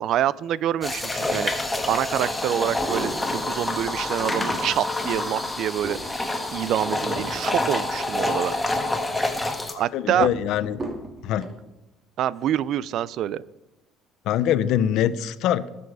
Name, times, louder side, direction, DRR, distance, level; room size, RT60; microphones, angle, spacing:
voice 1, 0.0-1.5 1.9-3.1 3.4-6.0 6.5-8.6 9.8-10.3 12.2-13.4, right 11 dB, 60° right, 20 dB, 0.4 m, -26 dB
sound 1, 0.8-9.7, left 2 dB, 10° left, 1.4 m, -27 dB
sound 2, 1.8-1.9 2.5-3.6 4.1-4.7 5.3-8.7 9.1-9.6 10.2-11.6 12.3-12.7 13.0-13.1, right 2 dB, 25° right, 2.5 m, -37 dB
voice 2, 9.7-10.8 11.2-11.5 14.3-15.7, left 10 dB, 70° left, 14 dB, 0.7 m, -23 dB
20.5 x 6.9 x 4.8 m, 0.99 s
cardioid pair, 130°, 0 cm